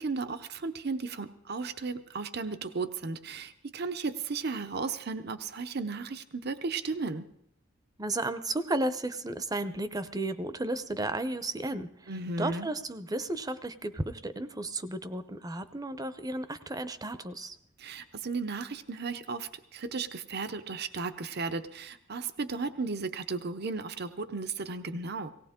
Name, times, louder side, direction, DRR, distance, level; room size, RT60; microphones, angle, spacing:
voice 1, 0.0-7.2 12.1-12.7 17.8-25.3, right 4 dB, 55° right, 10 dB, 0.8 m, -35 dB
voice 2, 8.0-12.1 12.4-17.6, right 2 dB, 20° right, 12 dB, 0.7 m, -33 dB
18.0 x 18.0 x 3.7 m, 0.72 s
head